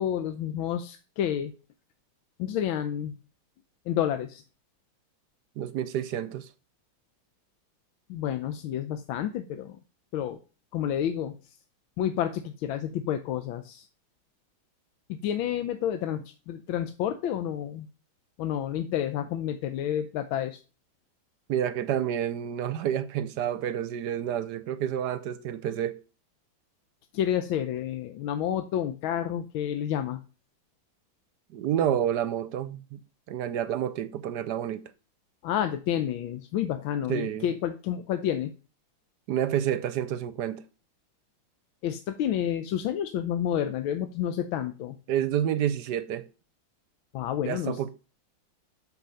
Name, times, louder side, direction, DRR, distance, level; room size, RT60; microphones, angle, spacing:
voice 1, 0.0-1.5 2.4-3.1 3.9-4.4 8.1-9.8 10.1-10.4 10.7-11.6 12.0-13.9 15.1-17.9 18.4-20.6 27.1-30.2 35.4-38.5 41.8-45.0 47.1-47.8, left 10 dB, 90° left, 1.5 m, -30 dB
voice 2, 5.6-6.5 21.5-26.0 31.5-33.0 33.3-34.8 37.1-37.5 39.3-40.6 45.1-46.3 47.4-47.9, right 10 dB, 70° right, 1.1 m, -29 dB
8.3 x 6.5 x 5.6 m
omnidirectional pair, 2.1 m